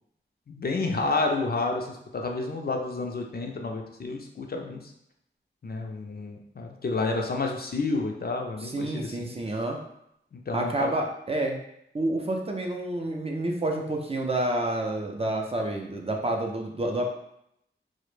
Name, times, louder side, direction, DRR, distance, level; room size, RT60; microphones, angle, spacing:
voice 1, 0.5-4.8 5.6-9.3 10.3-10.9, left 3 dB, 50° left, 2 dB, 0.4 m, -30 dB
voice 2, 8.6-9.8 10.5-11.6 11.9-17.0, right 1 dB, 30° right, 1 dB, 0.4 m, -29 dB
2.1 x 2.0 x 3.0 m, 0.76 s
wide cardioid pair, 50°, 21 cm